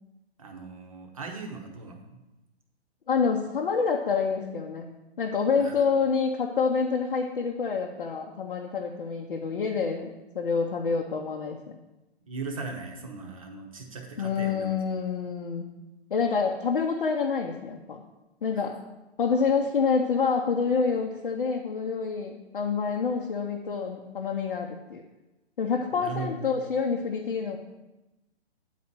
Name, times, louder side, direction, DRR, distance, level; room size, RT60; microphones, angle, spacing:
voice 1, 0.4-2.2 5.6-5.9 12.3-14.7 25.9-26.5, right 4 dB, 30° right, 3 dB, 0.9 m, -38 dB
voice 2, 3.1-4.9 5.2-11.6 14.2-15.7 16.1-18.0 18.4-18.8 19.2-25.0 25.6-27.6, left 5 dB, 55° left, 0 dB, 0.8 m, -27 dB
8.9 x 4.2 x 5.9 m, 1.0 s
hypercardioid pair, 175°, 33 cm